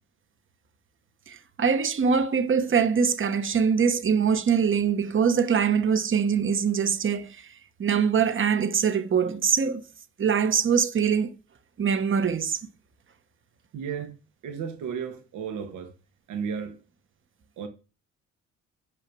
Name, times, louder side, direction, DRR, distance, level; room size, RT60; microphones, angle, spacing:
voice 1, 1.3-7.5 7.8-9.8 10.2-11.3 11.8-12.6, right 6 dB, 40° right, 1.2 m, -23 dB
voice 2, 13.7-14.2 14.4-15.9 16.3-16.8 17.6-17.7, right 7 dB, 80° right, 1.8 m, -33 dB
8.8 x 5.7 x 6.2 m
cardioid pair, 90°, 30 cm